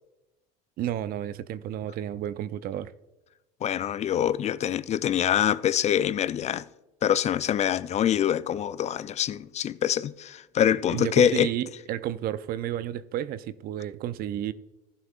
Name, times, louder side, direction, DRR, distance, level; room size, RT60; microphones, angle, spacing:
voice 1, 0.8-2.9 10.9-14.5, right 11 dB, 50° right, 0.6 m, -31 dB
voice 2, 3.6-6.6 7.0-11.5, left 10 dB, 35° left, 0.4 m, -25 dB
16.0 x 11.0 x 2.5 m
hypercardioid pair, 85°, 19 cm